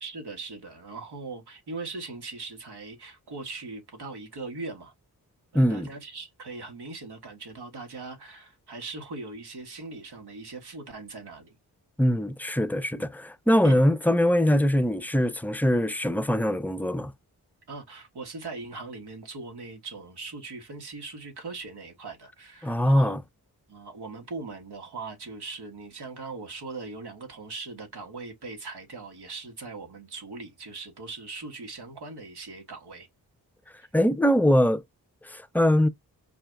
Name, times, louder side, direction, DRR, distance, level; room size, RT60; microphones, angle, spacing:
voice 1, 0.0-4.9 5.5-11.6 13.0-13.1 13.6-13.8 17.7-23.2 23.7-33.1, right 3 dB, 85° right, 1.6 m, -40 dB
voice 2, 5.5-5.9 12.0-17.1 22.6-23.2 33.9-34.8 35.2-35.9, equal, 5° left, 0.5 m, -22 dB
4.7 x 2.4 x 3.3 m
cardioid pair, 45°, 39 cm